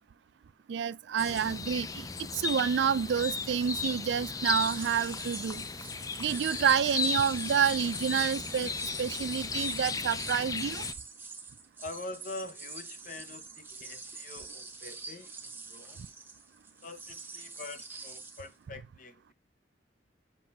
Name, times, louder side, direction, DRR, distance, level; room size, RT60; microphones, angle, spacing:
voice 1, 0.7-2.1 2.4-5.6 6.2-10.8, right 7 dB, 70° right, 0.3 m, -29 dB
sound 1, 1.2-10.9, left 4 dB, 20° left, 0.4 m, -35 dB
sound 2, 4.6-18.5, right 4 dB, 10° right, 0.8 m, -46 dB
voice 2, 4.8-5.3 11.8-16.1 16.8-19.1, left 2 dB, 45° left, 0.8 m, -45 dB
7.4 x 2.6 x 5.2 m
head